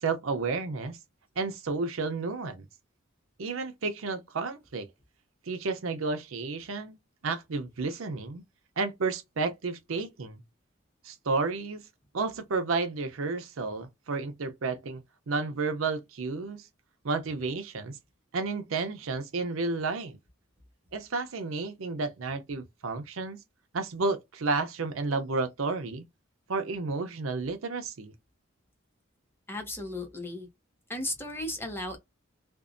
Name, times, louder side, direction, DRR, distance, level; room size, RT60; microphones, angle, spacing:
voice 1, 0.0-1.0 1.4-2.7 3.4-4.9 5.5-7.0 7.2-8.4 8.8-10.4 11.0-11.8 12.1-16.7 17.0-18.0 18.3-20.2 20.9-23.4 23.7-26.1 26.5-28.1, right 3 dB, 75° right, 0.6 m, -31 dB
voice 2, 29.5-30.5 30.9-32.0, left 1 dB, 10° left, 0.6 m, -35 dB
2.6 x 2.0 x 2.5 m
head